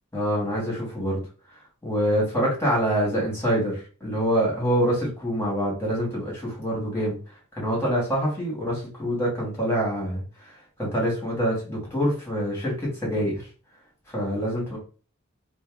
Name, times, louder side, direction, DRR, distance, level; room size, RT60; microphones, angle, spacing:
voice 1, 0.1-1.2 1.8-7.2 7.6-10.2 10.8-13.4 14.1-14.8, equal, 10° left, -4 dB, 2.1 m, -25 dB
3.5 x 2.7 x 3.5 m, 0.37 s
head